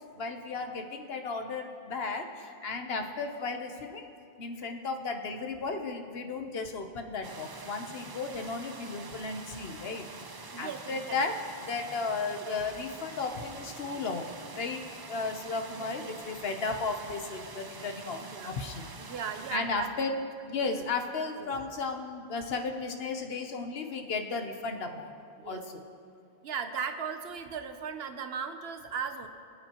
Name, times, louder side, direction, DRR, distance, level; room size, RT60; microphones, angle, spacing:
voice 1, 0.2-4.1 4.4-10.1 10.6-11.3 11.6-14.3 14.6-14.8 15.1-18.9 19.5-20.1 20.4-25.1 25.4-25.8, left 4 dB, 70° left, 5 dB, 1.1 m, -34 dB
sound 1, 7.2-19.6, right 4 dB, 35° right, 0.4 m, -46 dB
voice 2, 10.5-11.2 15.8-16.1 18.2-18.5 19.0-20.3 20.7-20.9 21.4-21.6 25.4-25.7 26.4-29.3, right 6 dB, 75° right, 7 dB, 1.0 m, -37 dB
24.0 x 8.4 x 3.0 m, 2.4 s
omnidirectional pair, 1.1 m